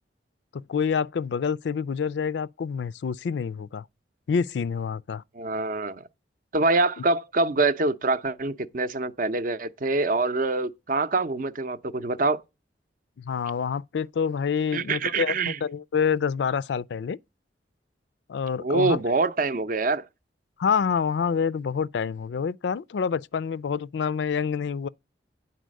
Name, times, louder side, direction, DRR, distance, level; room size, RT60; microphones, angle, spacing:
voice 1, 0.5-3.8 4.3-5.2 13.2-17.2 18.3-19.0 20.6-24.9, left 6 dB, 70° left, 0.4 m, -27 dB
voice 2, 5.3-6.0 6.5-12.4 14.7-15.6 18.6-20.0, right 3 dB, 45° right, 0.6 m, -25 dB
9.2 x 4.1 x 6.3 m
head